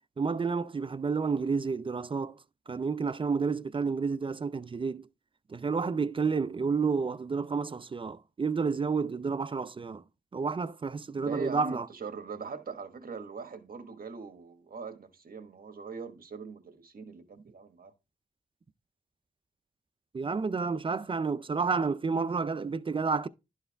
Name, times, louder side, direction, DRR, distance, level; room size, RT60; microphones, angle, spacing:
voice 1, 0.2-2.4 2.7-5.1 5.5-10.0 10.3-11.9 20.1-23.3, right 5 dB, 30° right, 0.4 m, -30 dB
voice 2, 11.2-17.9, right 5 dB, 60° right, 1.4 m, -41 dB
12.0 x 4.6 x 3.3 m
wide cardioid pair, 95°, 17 cm